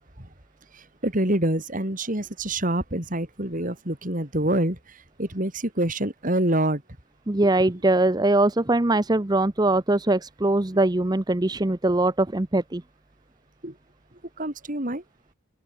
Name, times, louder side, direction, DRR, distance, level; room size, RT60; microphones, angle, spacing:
voice 1, 0.7-6.8 7.6-7.7 13.6-13.8 14.4-15.0, right 1 dB, 40° right, 4.0 m, -26 dB
voice 2, 7.3-12.8, right 2 dB, 20° right, 0.7 m, -22 dB
open air
head